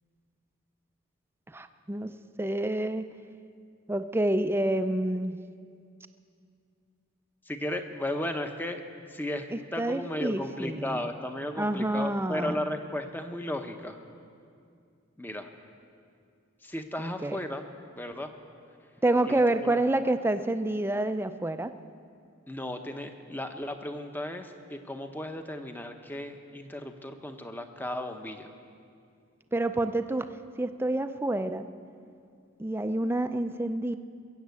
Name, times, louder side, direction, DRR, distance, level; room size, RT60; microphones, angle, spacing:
voice 1, 1.5-2.1 2.4-3.1 3.9-5.4 9.5-11.1 11.6-12.6 17.0-17.4 19.0-21.7 29.5-30.3 30.6-31.7 32.6-34.0, right 1 dB, 10° right, 10 dB, 0.4 m, -28 dB
voice 2, 7.5-8.8 9.1-14.0 15.2-15.5 16.6-17.6 17.9-18.3 19.2-19.8 22.5-28.5, left 1 dB, 10° left, 6 dB, 0.8 m, -35 dB
21.5 x 7.4 x 8.2 m, 2.3 s
head